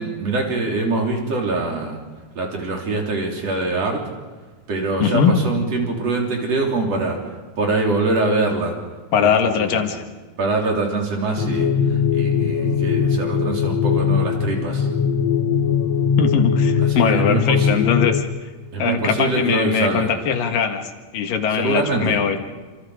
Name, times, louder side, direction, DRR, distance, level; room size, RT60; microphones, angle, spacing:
voice 1, 0.0-2.0 2.4-4.0 4.7-7.2 7.6-8.7 9.2-9.9 10.4-14.9 16.8-17.7 18.7-20.1 21.6-22.2, right 3 dB, 50° right, 0 dB, 4.6 m, -24 dB
voice 2, 5.0-5.3 9.1-10.0 16.2-18.2 18.8-22.4, left 7 dB, 85° left, 5 dB, 3.5 m, -20 dB
sound 1, 11.4-18.2, left 6 dB, 60° left, 2.2 m, -20 dB
28.5 x 27.0 x 5.1 m, 1.3 s
omnidirectional pair, 3.8 m